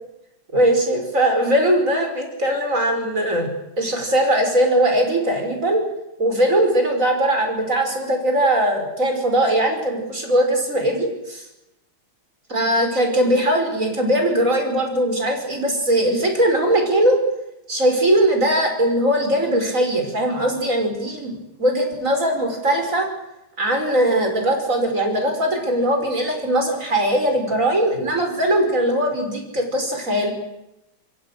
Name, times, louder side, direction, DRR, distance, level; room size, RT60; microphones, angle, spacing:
voice 1, 0.5-3.5 3.8-5.8 6.2-11.4 12.5-17.2 17.7-23.1 23.6-30.3, right 1 dB, 35° right, 4 dB, 6.0 m, -20 dB
28.0 x 22.0 x 6.7 m, 0.87 s
omnidirectional pair, 2.3 m